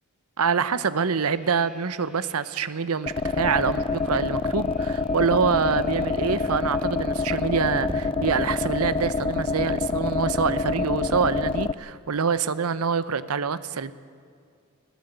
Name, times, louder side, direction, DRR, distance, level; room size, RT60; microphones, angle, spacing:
voice 1, 0.4-13.9, right 5 dB, 75° right, 15 dB, 0.8 m, -25 dB
sound 1, 1.2-8.6, right 3 dB, 5° right, 2.5 m, -51 dB
sound 2, 3.1-11.7, left 3 dB, 25° left, 0.4 m, -26 dB
sound 3, 7.8-8.4 10.4-10.6, equal, 25° right, 2.2 m, -39 dB
21.0 x 15.5 x 8.0 m, 2.3 s
head